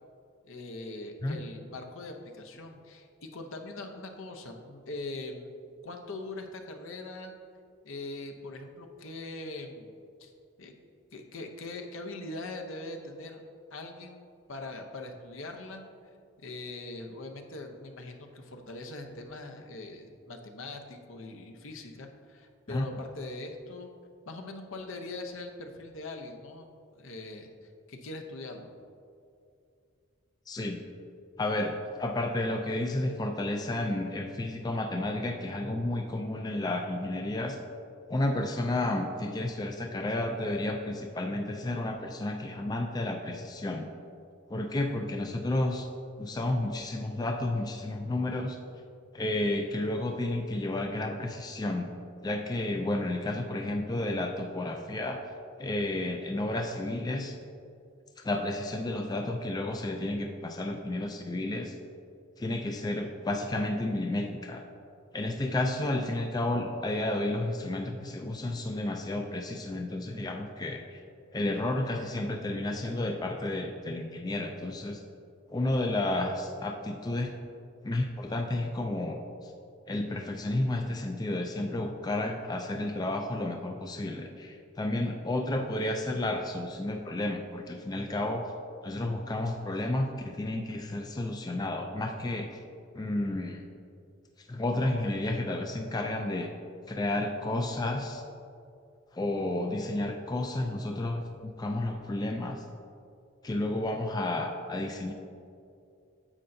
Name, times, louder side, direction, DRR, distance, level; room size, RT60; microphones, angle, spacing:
voice 1, 0.4-5.5 5.8-7.3 7.8-9.9 10.2-10.3 10.6-10.7 11.1-13.4 13.7-15.8 16.4-23.9 24.3-28.7, left 2 dB, 75° left, 4 dB, 0.8 m, -42 dB
voice 2, 30.5-30.8 31.4-37.6 38.1-43.9 44.5-45.9 46.2-48.6 49.1-52.0 52.2-55.2 55.6-57.4 58.2-61.8 62.4-64.6 65.1-71.0 71.3-75.0 75.5-77.3 77.8-79.5 79.9-88.5 88.8-92.6 92.9-93.6 94.4-96.5 96.9-98.2 99.1-102.6 103.4-105.1, left 1 dB, 20° left, 4 dB, 0.3 m, -31 dB
9.8 x 7.6 x 2.7 m, 2.4 s
head